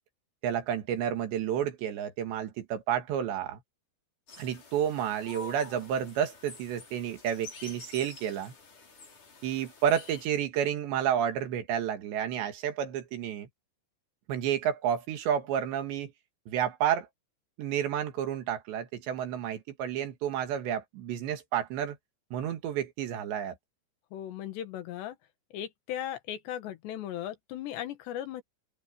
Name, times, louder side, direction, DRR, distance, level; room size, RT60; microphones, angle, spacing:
voice 1, 0.4-3.6 4.4-8.5 9.4-13.5 14.3-16.1 16.5-17.1 17.6-22.0 22.3-23.6, right 9 dB, 70° right, 4.0 m, -30 dB
sound 1, 4.3-10.3, left 3 dB, 45° left, 6.9 m, -48 dB
voice 2, 24.1-25.2 25.5-28.4, left 11 dB, 70° left, 3.6 m, -37 dB
open air
omnidirectional pair, 5.3 m